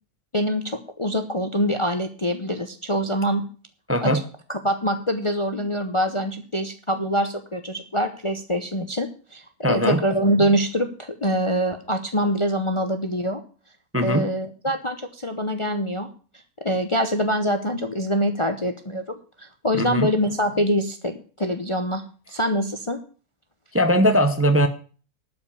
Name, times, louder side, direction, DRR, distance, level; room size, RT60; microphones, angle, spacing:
voice 1, 0.3-3.5 4.0-4.2 4.5-9.4 9.7-13.4 14.0-16.1 16.6-23.0, equal, 25° left, 7 dB, 0.8 m, -24 dB
voice 2, 3.9-4.2 9.6-10.0 13.9-14.3 19.7-20.1 23.7-24.7, equal, 10° right, 8 dB, 0.8 m, -20 dB
12.0 x 5.4 x 8.3 m, 0.39 s
omnidirectional pair, 1.6 m